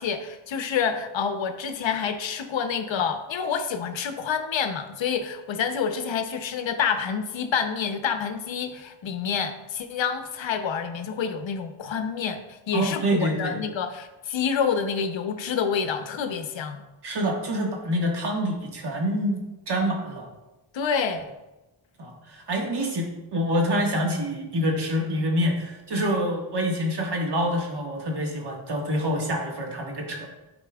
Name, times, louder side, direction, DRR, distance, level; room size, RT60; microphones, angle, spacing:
voice 1, 0.0-16.8 20.7-21.2, left 6 dB, 65° left, 8 dB, 0.7 m, -28 dB
voice 2, 12.7-13.6 17.0-20.3 22.0-30.3, equal, 55° right, 0 dB, 1.5 m, -26 dB
10.5 x 4.3 x 2.3 m, 1.0 s
cardioid pair, 85°, 49 cm